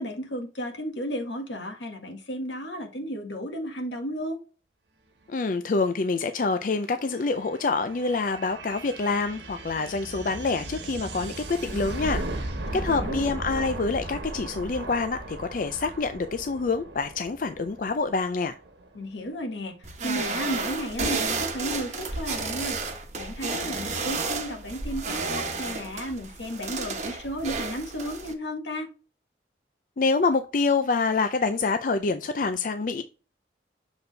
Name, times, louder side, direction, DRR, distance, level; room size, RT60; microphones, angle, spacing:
voice 1, 0.0-4.4 12.9-13.2 18.9-19.8 20.0-22.8 23.2-28.9, equal, 80° left, 4 dB, 1.7 m, -33 dB
voice 2, 5.3-18.6 30.0-33.0, left 4 dB, 45° left, 9 dB, 0.4 m, -26 dB
sound 1, 5.6-19.1, right 2 dB, 75° right, 1.4 m, -37 dB
sound 2, 19.8-28.3, right 4 dB, 40° right, 1.1 m, -32 dB
6.9 x 4.1 x 3.3 m, 0.34 s
head